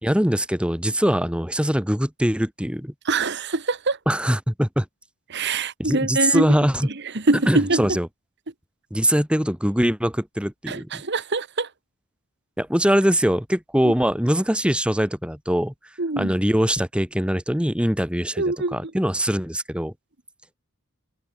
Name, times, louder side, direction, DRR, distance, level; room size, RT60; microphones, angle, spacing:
voice 1, 0.0-2.9 4.1-4.9 5.8-6.9 7.5-8.1 8.9-11.0 12.6-15.7 16.2-19.9, equal, 5° right, 2.1 m, -22 dB
voice 2, 3.0-4.0 5.3-6.5 7.1-8.0 10.7-11.7 13.8-13.9 16.0-16.3 18.4-18.8, right 3 dB, 50° right, 1.5 m, -24 dB
head